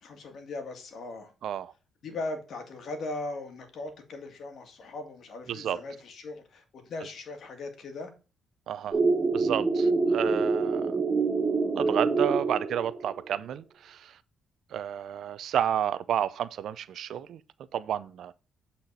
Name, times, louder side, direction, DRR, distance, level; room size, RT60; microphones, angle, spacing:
voice 1, 0.0-1.3 2.0-8.1, left 2 dB, 60° left, 1.9 m, -39 dB
voice 2, 1.4-1.7 5.5-5.8 8.7-9.0 9.3-11.0 11.7-14.2 14.7-17.4 17.7-18.3, right 10 dB, 70° right, 0.5 m, -31 dB
sound 1, 8.9-13.2, right 4 dB, 25° right, 2.5 m, -26 dB
8.0 x 4.2 x 4.2 m
cardioid pair, 90°, 0 cm